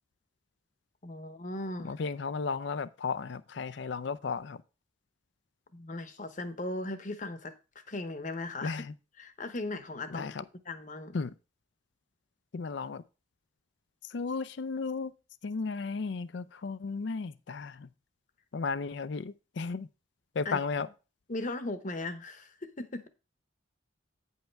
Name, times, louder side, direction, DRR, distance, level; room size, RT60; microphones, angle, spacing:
voice 1, 1.0-1.9 5.7-7.5 7.9-8.8 9.2-10.3 10.7-11.2 20.5-20.6 21.3-23.1, left 2 dB, 40° left, 0.9 m, -37 dB
voice 2, 1.8-4.6 8.6-8.9 10.1-10.4 11.1-11.3 12.5-13.0 14.0-15.1 15.4-17.9 18.5-19.9 20.3-20.9, left 4 dB, 60° left, 0.4 m, -34 dB
9.2 x 5.6 x 4.5 m
head